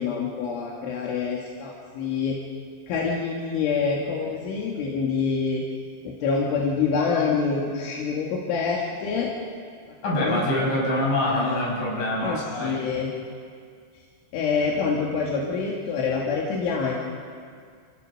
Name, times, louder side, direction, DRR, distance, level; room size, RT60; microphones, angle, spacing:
voice 1, 0.0-2.4 2.9-5.6 6.1-9.3 10.2-10.7 11.2-11.6 12.2-13.1 14.3-17.0, left 5 dB, 80° left, -3 dB, 4.4 m, -26 dB
voice 2, 10.0-12.8, left 1 dB, 45° left, -4 dB, 7.5 m, -25 dB
29.0 x 16.5 x 6.5 m, 2.1 s
omnidirectional pair, 5.5 m